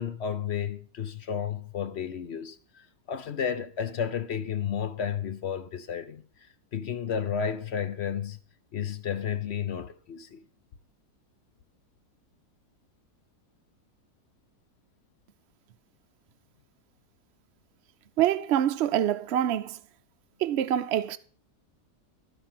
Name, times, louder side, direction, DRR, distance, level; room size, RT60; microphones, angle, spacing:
voice 1, 0.0-8.4 8.7-10.4, left 8 dB, 55° left, 0.8 m, -32 dB
voice 2, 18.2-19.8 20.4-21.2, right 11 dB, 55° right, 0.8 m, -25 dB
13.5 x 5.2 x 7.5 m
omnidirectional pair, 1.7 m